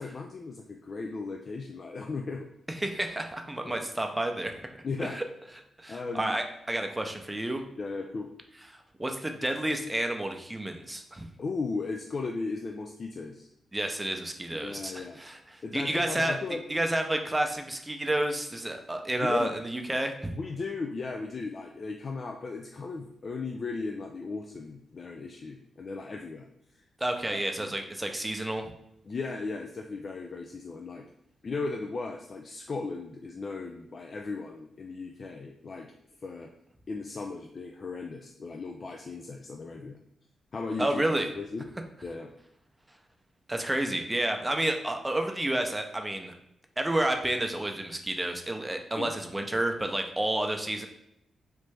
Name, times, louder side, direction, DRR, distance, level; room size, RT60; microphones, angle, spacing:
voice 1, 0.0-2.5 3.6-3.9 4.8-5.2 5.9-6.4 7.8-8.3 11.4-13.5 14.6-15.2 15.6-16.6 19.2-19.6 20.3-26.5 27.3-27.7 29.1-31.1 31.4-35.9 36.2-36.5 36.9-40.0 40.5-41.0 41.4-41.7 42.0-42.3 49.0-49.1, left 4 dB, 50° left, 2 dB, 0.3 m, -36 dB
voice 2, 2.7-4.6 5.0-5.2 5.8-7.6 9.0-11.3 13.7-16.4 16.7-20.3 27.0-28.7 40.8-41.3 43.5-46.3 46.8-50.9, right 1 dB, 15° right, 4 dB, 0.6 m, -30 dB
3.2 x 2.5 x 3.3 m, 0.77 s
supercardioid pair, 45°, 0 cm